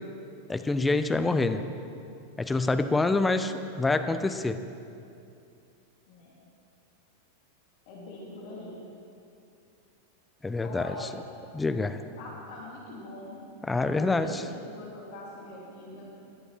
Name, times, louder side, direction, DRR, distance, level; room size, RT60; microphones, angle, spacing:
voice 1, 0.5-1.7 2.4-4.6 10.4-11.1 11.5-12.0 13.6-14.4, left 3 dB, 10° left, 9 dB, 0.7 m, -26 dB
voice 2, 7.9-8.8 10.6-11.2 12.0-13.4 13.8-16.1, left 2 dB, 50° left, -5 dB, 3.1 m, -43 dB
19.5 x 10.0 x 4.4 m, 2.5 s
figure-of-eight pair, 90°, 0 cm